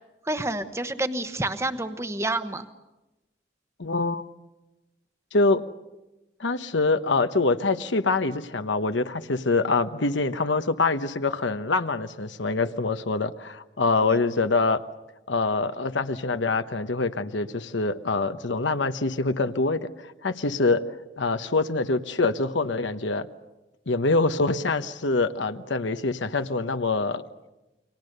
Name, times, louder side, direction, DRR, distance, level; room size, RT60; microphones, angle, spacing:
voice 1, 0.2-2.7, right 2 dB, 15° right, 10 dB, 1.0 m, -28 dB
voice 2, 3.8-4.3 5.3-5.6 6.4-14.8 15.3-19.9 20.2-20.8 21.2-23.3 23.9-27.2, left 3 dB, 80° left, 9 dB, 1.1 m, -25 dB
29.5 x 24.0 x 6.7 m, 1.0 s
head